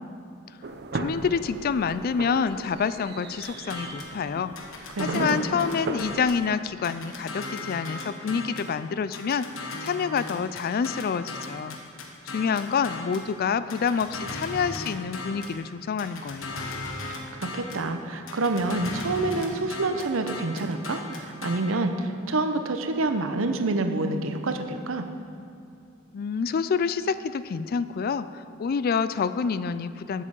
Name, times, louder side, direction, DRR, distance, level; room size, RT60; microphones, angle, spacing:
sound 1, 0.6-6.3, right 2 dB, 55° right, 0.6 m, -36 dB
voice 1, 0.9-4.5 5.0-11.8 12.3-16.6 26.1-30.2, left 6 dB, 50° left, 14 dB, 0.3 m, -27 dB
sound 2, 3.4-4.2 4.6-6.4 6.8-8.7 9.1-13.3 13.7-15.6 16.0-17.9 18.3-21.6, left 2 dB, 90° left, 1.3 m, -37 dB
voice 2, 4.9-5.4 17.4-25.1, right 2 dB, 90° right, 7 dB, 0.8 m, -27 dB
8.3 x 7.5 x 6.9 m, 2.4 s
head